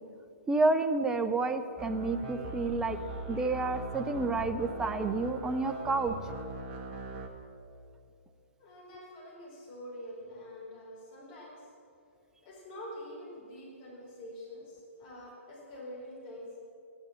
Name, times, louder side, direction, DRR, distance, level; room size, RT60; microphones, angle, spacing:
voice 1, 0.5-3.0 3.3-6.1, right 3 dB, 10° right, 9 dB, 0.6 m, -29 dB
sound 1, 1.8-7.3, right 2 dB, 25° right, 1.4 m, -40 dB
voice 2, 8.6-11.7 12.4-16.5, left 1 dB, 30° left, -4 dB, 4.3 m, -46 dB
14.5 x 11.0 x 7.2 m, 2.6 s
figure-of-eight pair, 125°, 7 cm